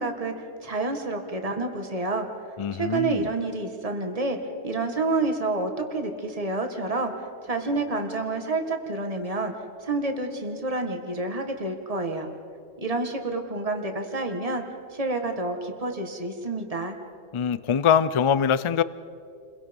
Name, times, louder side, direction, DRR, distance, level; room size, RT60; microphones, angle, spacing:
voice 1, 0.0-2.3 2.7-4.4 4.6-7.1 7.4-9.5 9.8-12.3 12.8-14.6 14.9-17.0, right 3 dB, 30° right, 4 dB, 1.9 m, -28 dB
voice 2, 2.6-3.3 17.3-18.8, left 7 dB, 50° left, 16 dB, 0.3 m, -23 dB
29.5 x 22.5 x 5.4 m, 2.5 s
omnidirectional pair, 1.3 m